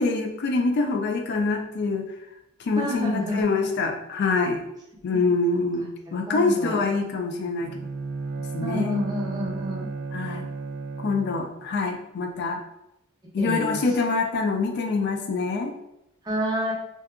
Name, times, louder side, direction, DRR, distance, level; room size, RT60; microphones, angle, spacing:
voice 1, 0.0-2.1 2.7-4.6 5.0-7.7 8.5-9.0 10.1-10.5 11.0-12.6 13.3-15.7, left 3 dB, 50° left, 4 dB, 0.3 m, -25 dB
voice 2, 2.7-3.7 5.1-5.2 6.3-6.8 8.6-9.9 13.4-13.8 16.2-16.7, equal, 20° right, -3 dB, 0.6 m, -29 dB
Bowed string instrument, 7.5-11.6, right 4 dB, 70° right, 0.3 m, -34 dB
2.7 x 2.2 x 2.4 m, 0.83 s
head